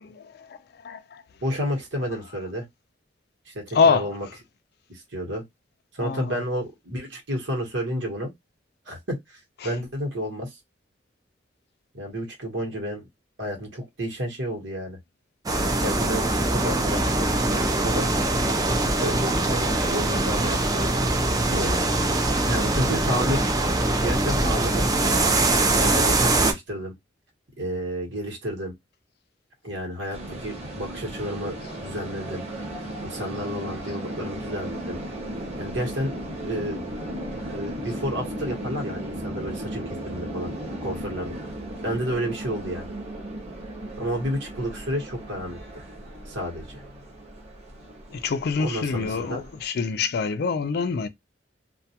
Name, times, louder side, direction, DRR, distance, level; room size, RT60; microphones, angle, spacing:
voice 1, 0.0-1.2 3.7-4.2 6.0-6.4 9.6-9.7 48.1-51.1, left 5 dB, 60° left, 0.4 m, -25 dB
voice 2, 1.4-2.7 3.5-4.3 4.9-5.4 5.9-8.3 8.9-9.2 9.6-10.6 11.9-13.1 13.4-15.0 15.8-18.1 18.9-20.9 21.4-21.8 22.4-23.4 23.9-25.4 25.7-26.9 27.6-28.7 29.6-32.4 33.0-35.0 35.6-36.1 36.4-36.8 37.5-40.5 40.8-41.3 41.8-42.9 44.0-45.8 46.3-46.8 48.6-49.4, equal, 85° right, 1.1 m, -31 dB
sound 1, 15.5-26.5, right 2 dB, 20° right, 0.4 m, -22 dB
sound 2, 30.1-49.6, right 1 dB, 35° right, 0.9 m, -36 dB
2.3 x 2.2 x 2.7 m
head